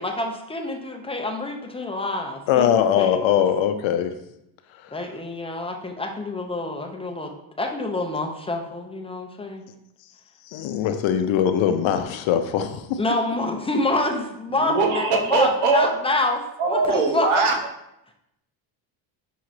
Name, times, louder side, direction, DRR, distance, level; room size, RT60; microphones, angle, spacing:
voice 1, 0.0-3.2 4.9-9.6 13.0-17.4, left 2 dB, 10° left, 2 dB, 0.4 m, -27 dB
voice 2, 2.5-4.1 10.5-13.0, left 9 dB, 70° left, 8 dB, 0.6 m, -21 dB
voice 3, 14.6-15.9 16.6-17.6, right 4 dB, 85° right, 3 dB, 0.9 m, -21 dB
5.6 x 2.9 x 2.5 m, 0.82 s
cardioid pair, 90°, 49 cm